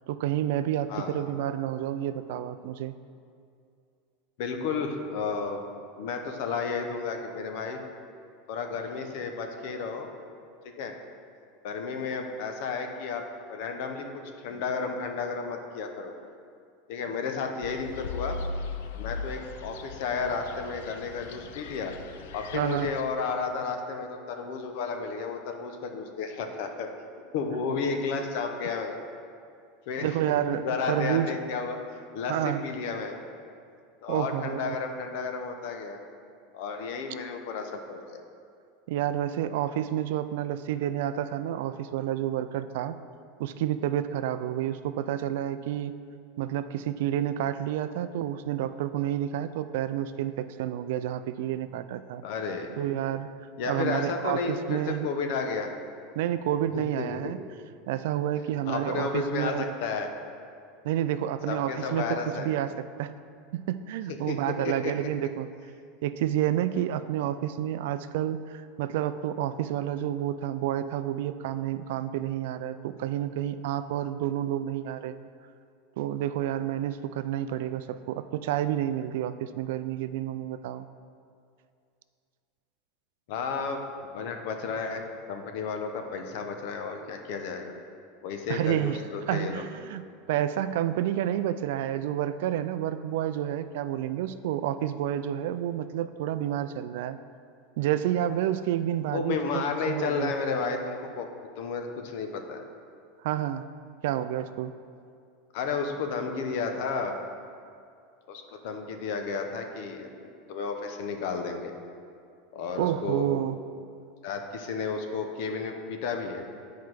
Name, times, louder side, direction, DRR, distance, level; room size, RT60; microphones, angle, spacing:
voice 1, 0.1-2.9 22.5-22.9 30.0-31.3 32.3-32.6 34.1-34.8 38.9-43.0 43.4-45.9 46.4-52.2 52.8-53.3 53.7-55.1 56.2-57.4 57.9-59.7 60.8-63.1 63.5-65.5 66.0-75.1 76.0-80.9 88.5-89.0 89.3-97.2 97.8-100.3 103.2-103.6 104.0-104.7 112.8-113.6, right 11 dB, 65° right, 12 dB, 0.3 m, -29 dB
voice 2, 0.9-1.2 4.4-5.6 6.0-7.8 8.5-10.1 10.8-10.9 11.6-13.2 13.5-14.1 14.4-16.1 16.9-18.4 19.0-21.9 22.3-26.9 27.3-28.9 29.9-30.2 30.5-31.8 32.1-33.2 34.0-36.0 36.5-38.2 52.2-52.7 53.6-55.7 56.7-57.3 58.7-60.1 61.5-62.5 64.3-64.4 64.6-64.9 83.3-85.0 85.3-87.7 88.2-89.7 99.1-101.3 101.6-102.6 105.5-107.2 108.3-111.7 112.5-113.3 114.2-116.4, left 5 dB, 60° left, 5 dB, 0.8 m, -32 dB
sound 1, 17.6-23.0, left 4 dB, 75° left, 0.4 m, -38 dB
9.5 x 4.6 x 4.7 m, 2.3 s
supercardioid pair, 165°, 0 cm